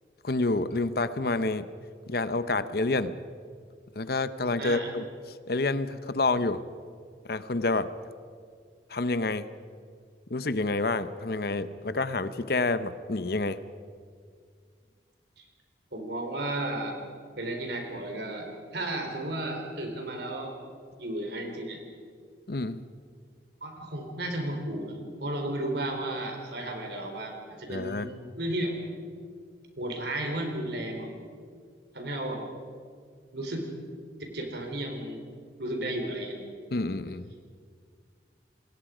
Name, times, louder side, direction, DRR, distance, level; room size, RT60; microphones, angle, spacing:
voice 1, 0.2-1.7 2.1-3.2 4.0-5.0 5.5-6.6 7.3-7.9 8.9-9.5 10.3-13.6 22.5-22.8 27.7-28.1 36.7-37.2, left 3 dB, 55° left, 13 dB, 0.8 m, -28 dB
voice 2, 4.6-4.9 15.4-15.5 15.9-17.0 17.4-20.6 21.0-21.8 23.6-28.8 29.8-31.1 31.9-32.4 33.3-33.7 34.2-35.2 35.6-36.4, right 1 dB, 60° right, 3 dB, 3.8 m, -33 dB
27.5 x 21.0 x 5.1 m, 2.1 s
head